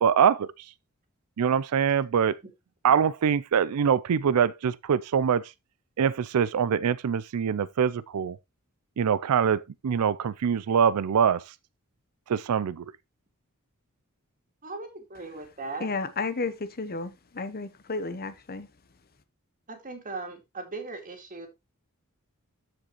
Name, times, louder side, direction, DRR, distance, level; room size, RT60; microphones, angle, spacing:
voice 1, 0.0-0.5 1.4-2.3 2.8-5.4 6.0-8.4 9.0-11.4 12.3-12.8, right 7 dB, 85° right, 0.4 m, -24 dB
voice 2, 14.6-15.9 19.7-21.5, right 3 dB, 40° right, 2.2 m, -38 dB
voice 3, 15.8-18.7, left 3 dB, 45° left, 0.8 m, -32 dB
13.5 x 5.0 x 2.9 m
head